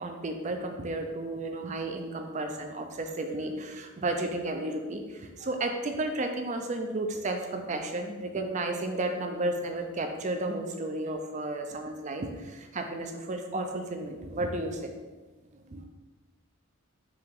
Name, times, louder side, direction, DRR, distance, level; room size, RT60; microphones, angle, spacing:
voice 1, 0.0-14.9 15.5-15.8, right 2 dB, 35° right, 5 dB, 0.4 m, -33 dB
4.6 x 2.9 x 3.6 m, 1.3 s
head